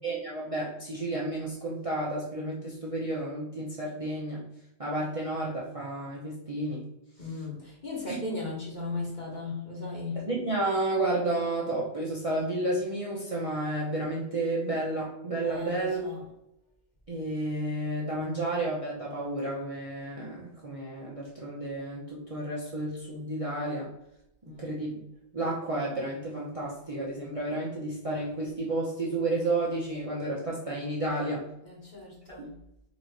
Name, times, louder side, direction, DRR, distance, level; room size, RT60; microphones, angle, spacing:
voice 1, 0.0-4.4 4.8-6.9 8.1-8.3 10.2-16.0 17.1-23.9 24.4-25.0 25.3-31.5 32.3-32.4, right 2 dB, 30° right, -4 dB, 0.7 m, -31 dB
voice 2, 7.2-10.2 15.4-16.3 24.4-24.7 31.6-32.6, left 3 dB, 35° left, -4 dB, 1.4 m, -37 dB
4.1 x 3.1 x 4.0 m, 0.84 s
omnidirectional pair, 1.4 m